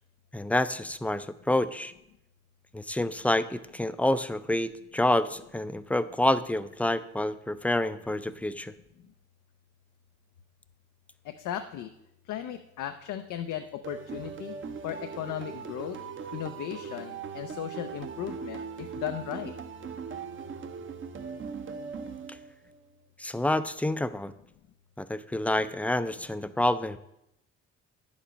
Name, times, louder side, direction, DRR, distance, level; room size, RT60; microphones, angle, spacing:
voice 1, 0.3-1.9 2.7-8.7 23.2-24.3 25.0-27.0, left 1 dB, 5° left, 13 dB, 0.4 m, -28 dB
voice 2, 11.2-11.9 12.2-14.5 14.8-16.0 16.3-19.6, left 11 dB, 80° left, 7 dB, 0.6 m, -36 dB
sound 1, 13.8-22.8, right 5 dB, 40° right, 0.9 m, -39 dB
10.0 x 7.2 x 5.1 m, 0.83 s
cardioid pair, 90°, 30 cm